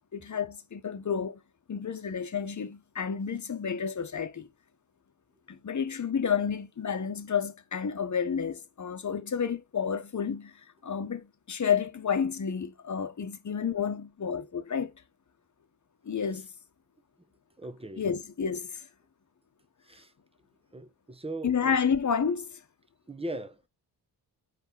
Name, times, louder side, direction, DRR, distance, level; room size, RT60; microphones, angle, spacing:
voice 1, 0.1-1.4 1.7-4.5 5.5-14.9 16.0-16.5 18.0-18.9 21.4-22.6, left 7 dB, 45° left, 1.3 m, -30 dB
voice 2, 17.6-18.0 19.8-20.1 20.7-21.5 23.1-23.7, right 1 dB, 15° right, 1.2 m, -39 dB
5.1 x 4.5 x 4.0 m
supercardioid pair, 50°, 42 cm